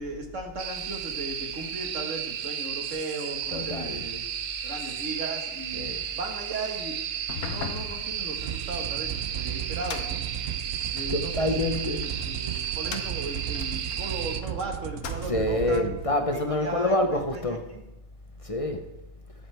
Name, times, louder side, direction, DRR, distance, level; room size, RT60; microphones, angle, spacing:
voice 1, 0.0-4.2 4.6-6.9 7.4-10.2 10.9-15.9 16.3-17.0 17.3-17.8, right 2 dB, 55° right, 2.0 m, -37 dB
sound 1, 0.6-14.4, right 9 dB, 75° right, 1.2 m, -34 dB
voice 2, 3.5-4.1 5.7-6.0 11.1-12.0 15.2-17.6 18.4-18.8, left 1 dB, 30° left, 0.7 m, -27 dB
sound 2, 7.1-11.2 11.8-14.5 14.9-15.6, left 6 dB, 70° left, 1.3 m, -40 dB
sound 3, 8.4-16.2, right 11 dB, 90° right, 0.5 m, -35 dB
20.0 x 7.5 x 3.4 m
omnidirectional pair, 1.6 m